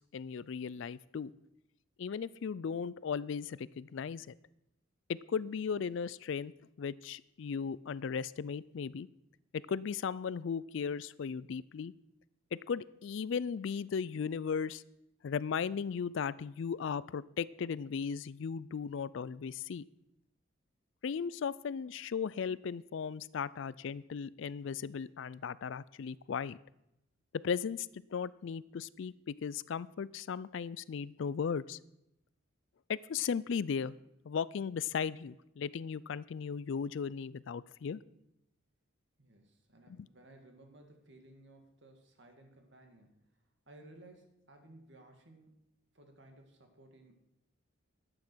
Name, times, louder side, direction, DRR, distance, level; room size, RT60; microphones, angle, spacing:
voice 1, 0.1-1.3 2.0-4.3 5.1-6.5 6.8-9.1 9.7-11.9 12.5-14.8 15.2-19.9 21.0-26.6 27.3-31.8 32.9-34.0 34.3-38.0 39.9-40.0, left 6 dB, 65° left, 20 dB, 0.4 m, -36 dB
voice 2, 39.2-43.3 43.7-45.5 45.9-47.2, right 1 dB, 55° right, 4 dB, 2.0 m, -58 dB
12.0 x 8.9 x 6.2 m, 0.85 s
head